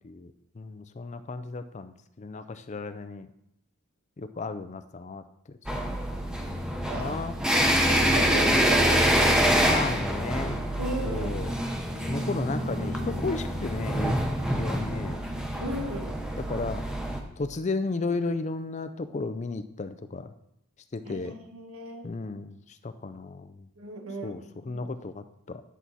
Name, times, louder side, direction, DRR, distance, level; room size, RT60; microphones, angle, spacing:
voice 1, 0.0-3.3 4.2-6.6 6.9-7.4 8.0-8.8 9.6-10.6 11.1-11.5 12.1-14.2 14.5-15.2 16.3-16.9 17.4-20.3 20.9-21.4 22.0-23.7 24.2-25.6, left 3 dB, 30° left, 11 dB, 0.4 m, -34 dB
sound 1, 5.7-17.2, equal, 5° right, 0.8 m, -26 dB
voice 2, 6.9-7.2 7.9-9.7 10.8-11.4 15.6-16.2 21.0-22.1 23.8-24.4 24.7-24.8, right 2 dB, 80° right, 3 dB, 1.6 m, -35 dB
sound 2, 11.9-15.6, left 1 dB, 60° right, 1.5 m, -44 dB
10.0 x 6.0 x 4.1 m, 0.79 s
head